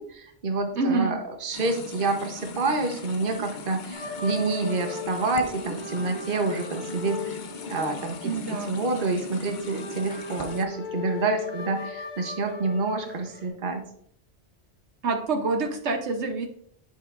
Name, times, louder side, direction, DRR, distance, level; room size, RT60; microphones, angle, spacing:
voice 1, 0.0-7.4 7.7-13.8, right 3 dB, 50° right, 4 dB, 1.2 m, -28 dB
voice 2, 0.8-1.1 8.2-8.8 15.0-16.5, right 3 dB, 75° right, 4 dB, 1.2 m, -26 dB
sound 1, 1.5-10.6, left 3 dB, 50° left, 0.8 m, -40 dB
sound 2, 3.9-13.5, left 4 dB, 70° left, 1.7 m, -38 dB
8.8 x 7.2 x 2.5 m, 0.66 s
omnidirectional pair, 1.2 m